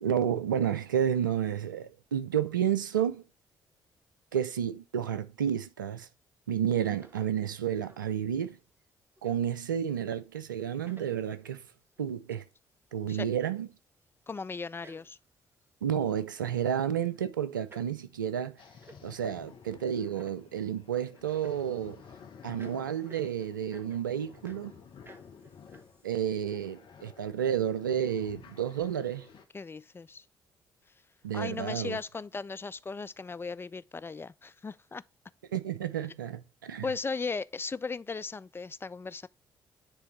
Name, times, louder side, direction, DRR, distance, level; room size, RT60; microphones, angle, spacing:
voice 1, 0.0-3.2 4.3-6.1 6.5-8.6 9.2-11.6 12.0-12.5 12.9-13.7 15.8-18.6 19.0-22.0 22.4-24.7 26.0-29.3 31.2-32.0 35.5-36.9, right 9 dB, 90° right, 0.4 m, -31 dB
sound 1, 6.8-7.3 7.6-8.0 8.5-8.6 9.2-9.4 10.0-10.1 10.6-10.7 10.9-11.3 12.0-12.1 13.1-13.2 13.6-13.7 14.6-15.2 15.6-16.1 16.7-16.8 17.0-17.4 17.7-17.9 18.3-18.4 18.6-19.0 19.4-19.5 19.7-20.4 20.9-22.1 22.6-24.7 25.0-26.1, right 1 dB, 20° right, 1.4 m, -55 dB
voice 2, 14.3-15.2 29.5-30.2 31.3-35.0 36.8-39.3, left 4 dB, 20° left, 0.3 m, -37 dB
sound 2, 18.6-29.4, left 6 dB, 55° left, 1.1 m, -53 dB
9.6 x 3.4 x 3.1 m
figure-of-eight pair, 40°, 10 cm